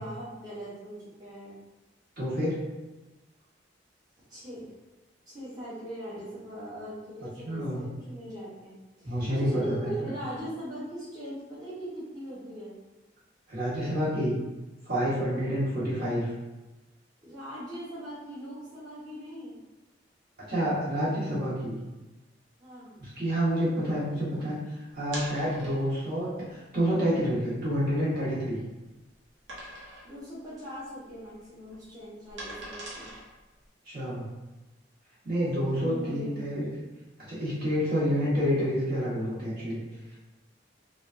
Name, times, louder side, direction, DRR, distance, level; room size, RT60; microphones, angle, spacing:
voice 1, 0.0-1.6 4.3-4.7 5.3-12.7 15.3-15.6 17.2-19.6 22.6-22.9 30.0-33.1 35.9-36.4 39.9-40.0, right 1 dB, 20° right, -11 dB, 0.9 m, -40 dB
voice 2, 2.2-2.6 7.4-7.8 9.0-9.9 13.5-14.3 14.8-16.3 20.5-21.8 23.0-28.6 33.9-34.2 35.2-36.7 37.3-39.8, equal, 55° right, -9 dB, 1.3 m, -28 dB
sound 1, 25.1-26.0 26.7-26.8 27.3-27.4 27.8-28.8 29.5-30.2 30.5-30.8 31.1-33.6, right 1 dB, 85° right, 0.9 m, -42 dB
3.3 x 2.3 x 2.5 m, 1.1 s
head